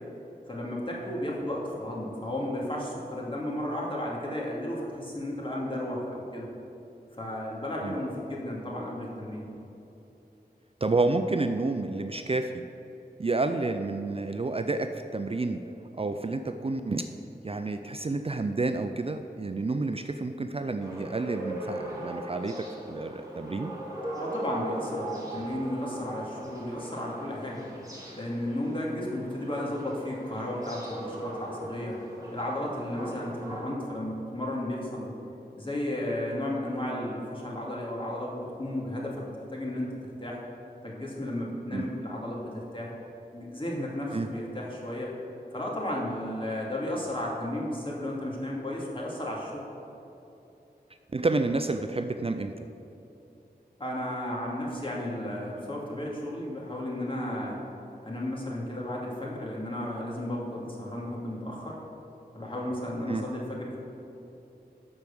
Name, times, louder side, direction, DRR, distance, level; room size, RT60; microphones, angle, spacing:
voice 1, 0.5-6.5 7.2-9.4 24.2-27.6 28.1-32.0 32.3-35.1 35.5-39.9 40.2-40.4 40.8-42.9 43.3-45.1 45.5-49.6 53.8-57.6 58.0-61.8 62.3-63.8, left 1 dB, 30° left, -4 dB, 2.2 m, -33 dB
voice 2, 10.8-12.7 13.2-15.6 16.0-17.1 17.4-23.8 41.7-41.9 44.1-44.3 51.1-52.7 63.1-63.3, right 3 dB, 35° right, 7 dB, 0.4 m, -29 dB
sound 1, 20.8-33.6, right 1 dB, 20° right, 2.5 m, -39 dB
12.0 x 4.6 x 7.1 m, 3.0 s
wide cardioid pair, 65°, 17 cm